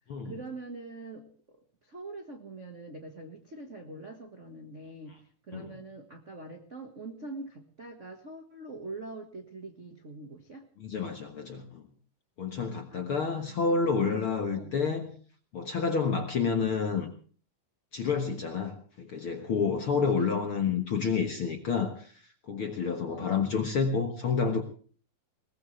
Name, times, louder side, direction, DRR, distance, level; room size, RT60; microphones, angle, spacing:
voice 1, 0.2-10.7 12.9-14.7 20.1-20.5 23.1-23.4, right 3 dB, 50° right, 2 dB, 0.9 m, -44 dB
voice 2, 10.8-11.8 12.4-15.1 15.5-17.1 17.9-24.6, left 5 dB, 55° left, 5 dB, 1.5 m, -29 dB
21.5 x 19.0 x 3.3 m, 0.42 s
omnidirectional pair, 4.1 m